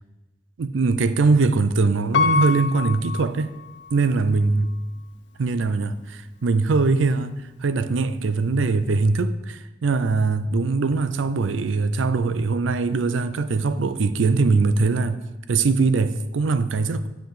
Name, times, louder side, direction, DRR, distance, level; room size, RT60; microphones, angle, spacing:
voice 1, 0.6-3.5 3.9-4.7 5.4-15.2 15.5-17.1, right 3 dB, 85° right, 0.5 m, -21 dB
Piano, 2.1-4.1 4.7-4.8, left 5 dB, 65° left, 0.5 m, -25 dB
6.9 x 5.8 x 5.7 m
head